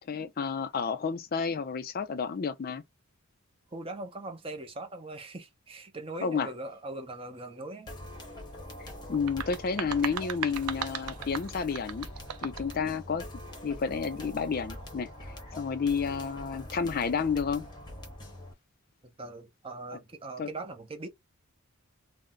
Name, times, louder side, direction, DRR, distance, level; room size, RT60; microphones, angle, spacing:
voice 1, 0.1-2.8 6.2-6.5 9.1-12.1 12.4-13.3 13.6-15.1 15.6-17.7 20.4-20.5, left 5 dB, 40° left, 0.4 m, -30 dB
voice 2, 3.7-7.9 19.0-21.1, right 2 dB, 25° right, 0.6 m, -40 dB
sound 1, 7.9-18.5, left 1 dB, 20° left, 0.8 m, -44 dB
sound 2, 9.1-12.8, right 8 dB, 85° right, 0.5 m, -37 dB
2.5 x 2.1 x 3.8 m
head